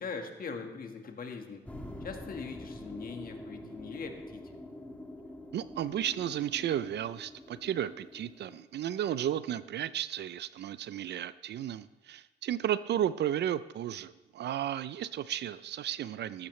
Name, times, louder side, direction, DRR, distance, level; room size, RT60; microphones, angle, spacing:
voice 1, 0.0-1.7 2.0-4.6, left 5 dB, 45° left, 4 dB, 1.6 m, -41 dB
sound 1, 1.7-8.6, left 1 dB, 5° left, 1.4 m, -46 dB
voice 2, 5.5-16.5, right 11 dB, 60° right, 15 dB, 0.5 m, -33 dB
14.0 x 12.0 x 3.2 m, 1.1 s
cardioid pair, 90°, 20 cm